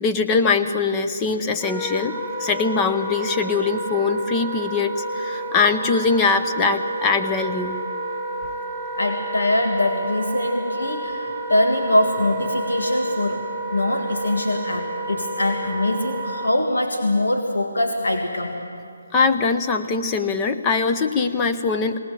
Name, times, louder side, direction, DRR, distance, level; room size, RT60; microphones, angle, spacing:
voice 1, 0.0-7.8 19.1-22.0, left 4 dB, 15° left, 7 dB, 0.8 m, -22 dB
Wind instrument woodwind instrument, 1.6-16.5, right 1 dB, 5° right, 1.3 m, -30 dB
voice 2, 9.0-18.6, left 1 dB, 90° left, 3 dB, 1.8 m, -23 dB
20.0 x 18.5 x 7.6 m, 2.5 s
hypercardioid pair, 165°, 0 cm